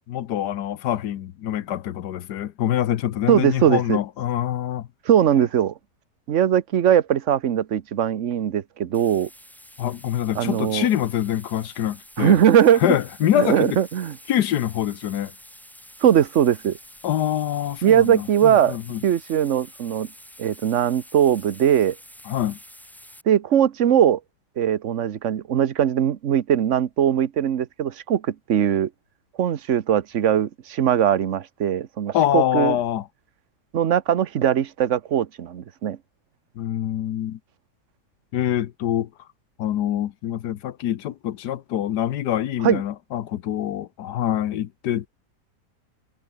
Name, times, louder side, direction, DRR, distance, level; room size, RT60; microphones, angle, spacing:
voice 1, 0.1-4.9 9.8-12.4 12.8-13.8 14.3-15.3 17.0-19.0 22.3-22.6 32.1-33.1 36.6-37.4 38.3-39.1 39.6-45.1, left 11 dB, 70° left, 1.4 m, -25 dB
voice 2, 3.3-4.0 5.1-5.7 6.3-9.3 10.4-10.9 12.2-12.9 13.4-14.2 16.0-16.8 17.8-18.8 19.0-20.1 20.4-22.0 23.3-24.2 24.6-28.9 29.4-32.8 33.7-36.0 42.6-42.8, right 9 dB, 50° right, 1.1 m, -20 dB
sound 1, 8.9-23.2, equal, ahead, 2.1 m, -48 dB
omnidirectional pair, 1.9 m